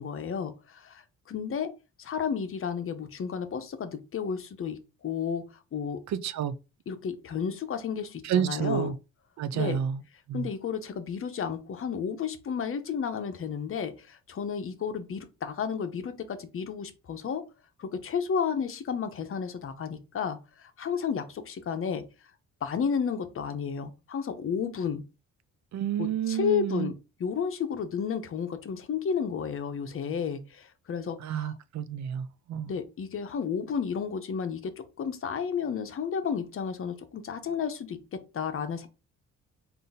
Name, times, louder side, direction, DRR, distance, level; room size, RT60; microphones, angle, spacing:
voice 1, 0.0-6.0 6.9-8.9 9.5-9.8 10.3-17.4 17.8-22.0 22.6-25.0 26.0-26.9 27.2-31.5 32.7-38.9, left 7 dB, 45° left, 0.7 m, -32 dB
voice 2, 6.1-6.6 8.2-9.0 9.4-10.0 10.3-10.5 25.7-26.9 31.2-32.8, right 9 dB, 65° right, 0.5 m, -30 dB
3.8 x 2.6 x 3.9 m
cardioid pair, 90°, 30 cm